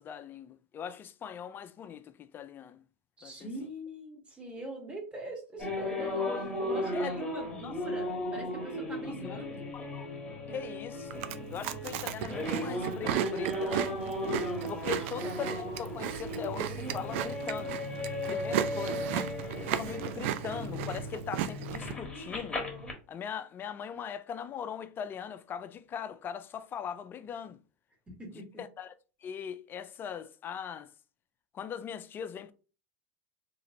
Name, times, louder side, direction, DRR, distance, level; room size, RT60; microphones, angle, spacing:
voice 1, 0.0-2.8 3.2-3.5 6.9-7.1 7.6-7.7 9.0-9.4 9.7-10.1 10.5-11.2 11.5-14.0 14.7-17.8 18.1-22.7 23.1-27.6 28.6-28.9 29.2-30.9 31.5-32.5, left 8 dB, 30° left, 0.3 m, -40 dB
voice 2, 3.2-9.7 15.0-15.1 28.1-28.5, right 1 dB, 15° right, 1.3 m, -42 dB
sound 1, 5.6-22.9, left 1 dB, 10° left, 1.1 m, -36 dB
Chewing mastication, 11.1-21.9, right 11 dB, 65° right, 0.3 m, -35 dB
2.9 x 2.9 x 2.6 m
hypercardioid pair, 115°, 7 cm